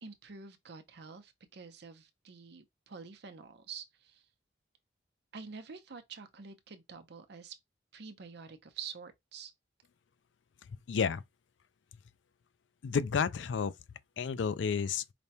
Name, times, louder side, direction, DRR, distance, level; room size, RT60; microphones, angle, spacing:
voice 1, 0.0-4.2 5.3-7.6 7.9-9.5, right 5 dB, 65° right, 0.7 m, -47 dB
voice 2, 10.9-11.2 12.8-13.7 14.2-15.0, left 6 dB, 85° left, 0.4 m, -30 dB
5.0 x 2.2 x 2.8 m
head